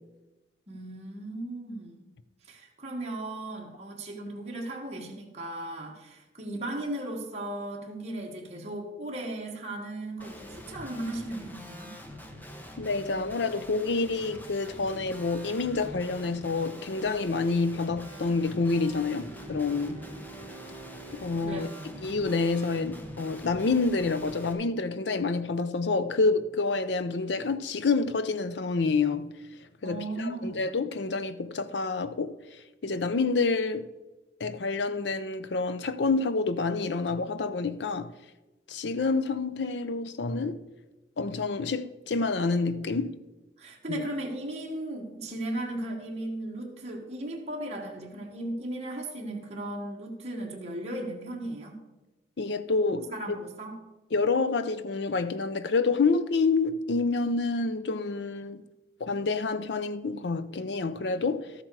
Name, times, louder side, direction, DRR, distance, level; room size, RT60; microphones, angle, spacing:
voice 1, 0.7-2.1 2.5-12.0 21.4-22.0 29.8-30.6 43.6-51.8 52.9-53.8, right 1 dB, 35° right, 1.5 m, -36 dB
Guitar, 10.2-24.5, left 1 dB, 10° left, 0.9 m, -44 dB
voice 2, 12.8-20.0 21.2-21.7 22.0-29.3 29.8-32.3 32.8-33.9 34.4-38.1 38.7-40.6 41.2-43.2 43.9-44.0 52.4-53.0 54.1-58.6 59.0-61.5, left 3 dB, 80° left, 0.6 m, -28 dB
Bowed string instrument, 18.3-23.1, right 4 dB, 30° left, 3.0 m, -49 dB
12.5 x 7.6 x 4.7 m
head